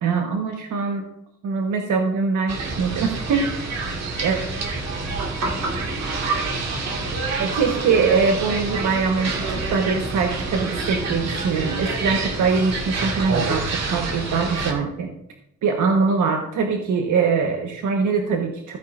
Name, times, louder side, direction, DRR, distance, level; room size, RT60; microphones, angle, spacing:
voice 1, 0.0-1.0 1.4-3.5 4.2-4.4 7.4-15.1 15.6-18.8, right 5 dB, 80° right, 2 dB, 1.4 m, -22 dB
sound 1, 2.5-14.7, right 3 dB, 60° right, 2.1 m, -27 dB
15.5 x 9.0 x 2.6 m, 0.77 s
wide cardioid pair, 160°, 30 cm